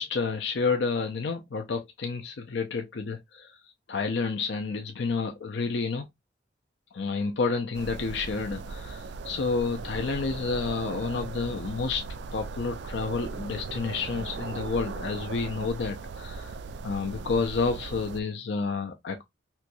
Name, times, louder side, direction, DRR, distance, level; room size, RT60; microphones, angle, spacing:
voice 1, 0.0-3.5 3.9-6.1 6.9-12.0 12.3-16.5 16.8-19.2, left 4 dB, 70° left, 0.5 m, -30 dB
sound 1, 7.7-18.2, right 4 dB, 65° right, 0.3 m, -38 dB
4.4 x 2.3 x 2.5 m
head